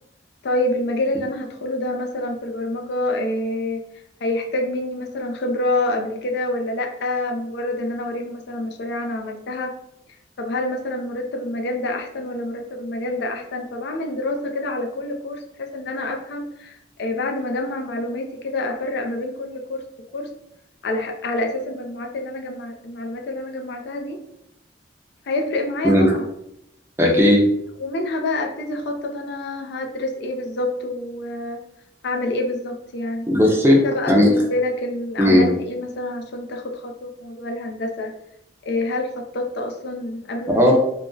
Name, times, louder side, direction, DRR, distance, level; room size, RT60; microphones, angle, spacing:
voice 1, 0.4-3.8 4.2-9.7 10.4-19.8 20.1-20.3 20.8-24.2 25.3-26.3 27.0-27.3 27.8-31.6 32.0-33.3 33.8-38.1 38.6-40.6, left 1 dB, 60° left, 3 dB, 0.4 m, -27 dB
voice 2, 27.0-27.4 33.3-33.8 34.1-34.3 35.2-35.5 40.5-40.7, left 1 dB, 15° right, -1 dB, 0.5 m, -15 dB
2.5 x 2.0 x 3.7 m, 0.79 s
head